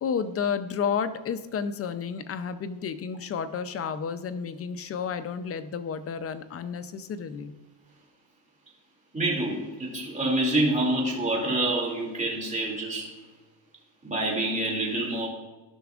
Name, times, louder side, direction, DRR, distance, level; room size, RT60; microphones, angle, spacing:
voice 1, 0.0-7.5, left 6 dB, 35° left, 11 dB, 0.5 m, -31 dB
voice 2, 9.1-13.1 14.0-15.3, right 1 dB, 15° right, -3 dB, 2.5 m, -27 dB
13.0 x 5.9 x 2.4 m, 1.2 s
cardioid pair, 125°, 44 cm